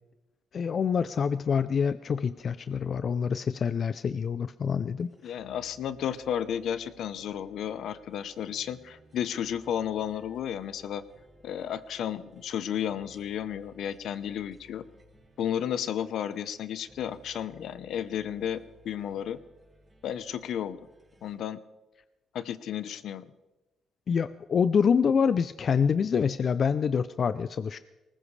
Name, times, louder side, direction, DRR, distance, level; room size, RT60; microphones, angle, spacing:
voice 1, 0.5-5.3 24.1-27.8, left 6 dB, 50° left, 13 dB, 0.5 m, -26 dB
sound 1, 5.0-21.3, right 1 dB, 30° right, 4.5 m, -59 dB
voice 2, 5.2-11.0 11.4-14.8 15.4-19.4 20.0-20.8 21.2-21.6 22.3-23.3, left 9 dB, 75° left, 13 dB, 0.8 m, -33 dB
20.5 x 19.0 x 3.3 m, 1.0 s
cardioid pair, 90°, 0 cm